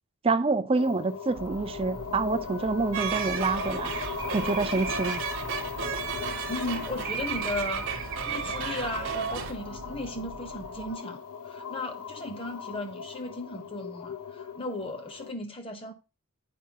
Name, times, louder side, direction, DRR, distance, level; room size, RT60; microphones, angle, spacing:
voice 1, 0.2-3.9 4.3-5.2, right 3 dB, 25° right, 0.4 m, -27 dB
sound 1, 0.7-15.3, left 6 dB, 85° left, 0.6 m, -39 dB
sound 2, 1.3-11.0, right 2 dB, 85° right, 0.6 m, -45 dB
sound 3, 2.9-9.5, right 6 dB, 60° right, 1.0 m, -33 dB
voice 2, 6.5-7.9 8.2-15.9, left 2 dB, 25° left, 0.8 m, -36 dB
8.5 x 4.8 x 2.8 m
head